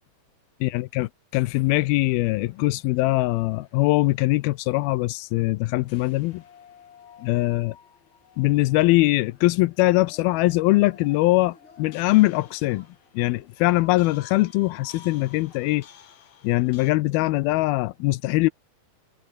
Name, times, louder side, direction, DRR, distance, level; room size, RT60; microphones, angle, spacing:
voice 1, 0.6-6.4 7.2-7.8 8.4-12.9 13.1-15.8 16.4-18.5, left 20 dB, 80° left, 2.2 m, -22 dB
sound 1, 1.5-16.9, left 9 dB, 60° left, 4.2 m, -53 dB
Yell / Cheering, 10.0-16.1, left 3 dB, 30° left, 6.9 m, -55 dB
omnidirectional pair, 4.9 m